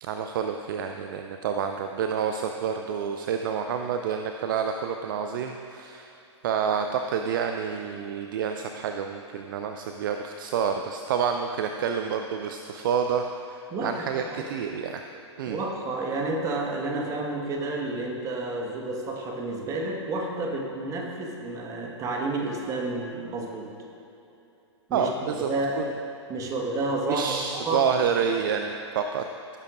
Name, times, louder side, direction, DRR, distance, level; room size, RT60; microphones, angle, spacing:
voice 1, 0.0-6.1 6.4-15.0 15.4-15.6 24.9-25.5 25.8-25.9 27.1-29.2, right 7 dB, 45° right, 6 dB, 0.5 m, -28 dB
voice 2, 13.7-14.4 15.5-23.7 24.9-25.8 26.3-28.1, right 2 dB, 20° right, 1 dB, 1.5 m, -30 dB
18.0 x 10.5 x 2.6 m, 2.9 s
figure-of-eight pair, 105°, 15 cm